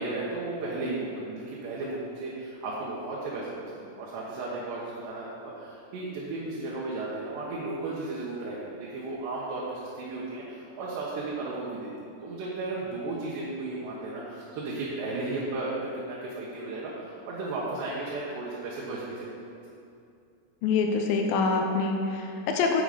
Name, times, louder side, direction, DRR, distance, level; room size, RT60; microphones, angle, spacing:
voice 1, 0.0-19.3, right 2 dB, 80° right, -6 dB, 3.4 m, -34 dB
voice 2, 20.6-22.8, left 4 dB, 80° left, 3 dB, 2.2 m, -25 dB
9.3 x 8.8 x 5.1 m, 2.5 s
omnidirectional pair, 4.9 m